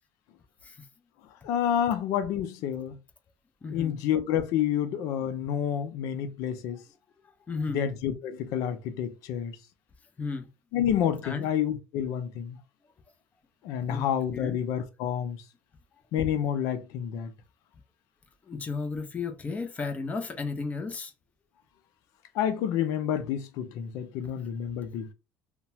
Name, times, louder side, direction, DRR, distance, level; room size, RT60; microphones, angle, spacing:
voice 1, 1.4-3.0 3.7-6.8 7.7-9.5 10.7-12.6 13.6-15.4 16.1-17.3 22.3-25.1, left 9 dB, 70° left, 0.6 m, -29 dB
voice 2, 3.6-4.0 7.5-7.8 10.2-10.5 11.2-11.4 13.8-14.1 14.3-14.6 18.5-21.1, left 4 dB, 25° left, 0.7 m, -34 dB
2.9 x 2.2 x 2.7 m
supercardioid pair, 105°, 6 cm